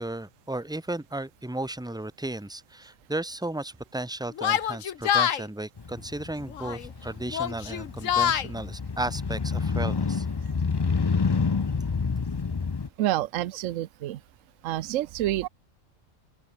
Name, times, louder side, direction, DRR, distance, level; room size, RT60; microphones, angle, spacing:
voice 1, 0.0-10.2, right 1 dB, 5° right, 0.9 m, -34 dB
Yell, 4.4-5.4 6.5-6.9 7.3-8.5, left 9 dB, 85° left, 1.4 m, -26 dB
Motorcycle, 5.8-12.9, left 5 dB, 35° left, 0.4 m, -28 dB
voice 2, 13.0-14.2 14.6-15.5, right 14 dB, 80° right, 1.0 m, -28 dB
open air
omnidirectional pair, 1.3 m